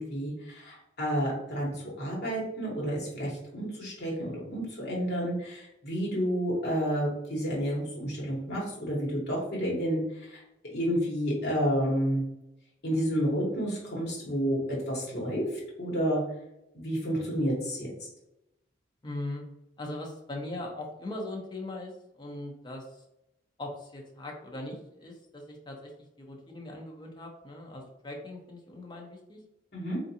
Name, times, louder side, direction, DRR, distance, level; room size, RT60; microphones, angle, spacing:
voice 1, 0.0-10.4 10.7-12.2 12.8-16.2 16.7-17.9 29.7-30.0, equal, 60° left, -4 dB, 1.3 m, -30 dB
voice 2, 19.0-19.4 19.8-23.0 23.6-25.9 26.2-29.4, left 1 dB, 25° left, 0 dB, 0.6 m, -40 dB
3.5 x 2.5 x 2.8 m, 0.87 s
head